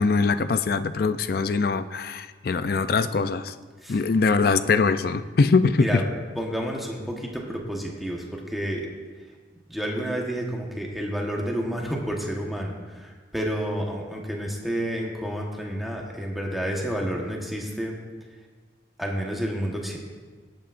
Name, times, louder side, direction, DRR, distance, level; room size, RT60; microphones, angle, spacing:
voice 1, 0.0-3.5 3.9-6.0, left 4 dB, 50° left, 12 dB, 0.4 m, -22 dB
voice 2, 6.3-8.9 9.2-9.3 9.7-18.0 19.0-20.0, equal, ahead, -1 dB, 1.2 m, -30 dB
19.5 x 8.5 x 2.5 m, 1.5 s
head